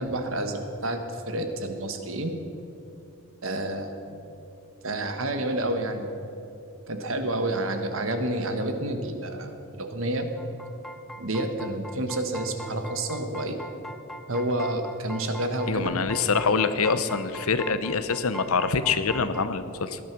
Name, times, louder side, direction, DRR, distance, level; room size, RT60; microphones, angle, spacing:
voice 1, 0.0-2.4 3.4-4.2 4.8-6.1 6.9-9.5 9.8-10.3 11.2-13.6 14.3-16.0, right 1 dB, 70° right, 6 dB, 1.6 m, -29 dB
sound 1, 10.4-19.5, equal, ahead, 0.5 m, -42 dB
voice 2, 15.7-20.0, left 5 dB, 85° left, 12 dB, 0.9 m, -25 dB
19.0 x 11.5 x 6.2 m, 2.9 s
head